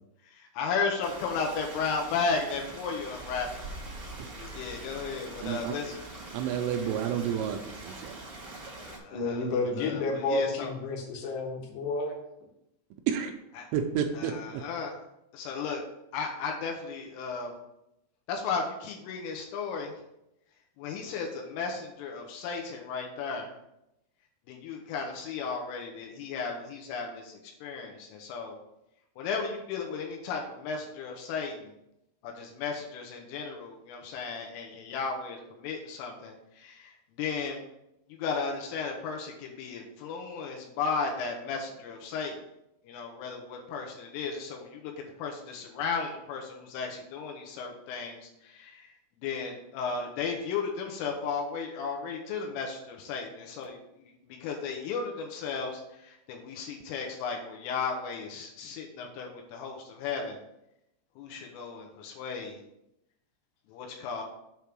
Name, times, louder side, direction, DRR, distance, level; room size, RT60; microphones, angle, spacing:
voice 1, 0.2-3.6 4.4-6.0 8.8-10.7 13.6-13.7 14.1-15.0 15.3-15.8 16.1-17.5 18.3-20.0 20.8-23.5 24.5-28.6 29.2-31.8 32.2-37.6 38.1-42.4 42.9-44.9 45.2-48.9 49.2-60.4 61.2-62.6 63.7-64.2, left 5 dB, 85° left, 1 dB, 3.5 m, -35 dB
Stream, 1.0-9.0, right 2 dB, 65° right, 1.0 m, -43 dB
voice 2, 5.4-5.8 6.3-8.2 13.1-13.3 13.7-14.6, right 8 dB, 85° right, 4 dB, 2.9 m, -30 dB
voice 3, 9.1-12.2, left 3 dB, 65° left, 0 dB, 3.2 m, -30 dB
8.1 x 3.5 x 6.1 m, 0.84 s
omnidirectional pair, 5.8 m